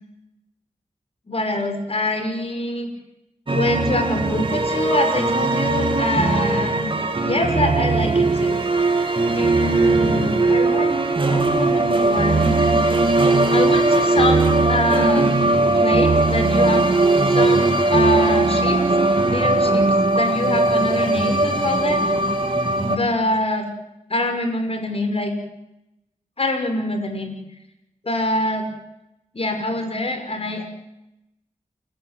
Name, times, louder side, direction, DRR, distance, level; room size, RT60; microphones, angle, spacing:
voice 1, 1.3-2.9 3.5-6.9 7.2-8.6 9.3-11.0 11.3-15.4 15.7-16.9 17.3-18.8 19.2-19.9 20.2-23.7 24.1-25.3 26.4-27.3 28.0-28.7 29.3-30.7, left 1 dB, 50° left, 5 dB, 5.9 m, -25 dB
sound 1, 3.5-23.0, right 2 dB, 40° right, 3.1 m, -19 dB
29.5 x 14.0 x 9.3 m, 0.89 s
wide cardioid pair, 65°, 13 cm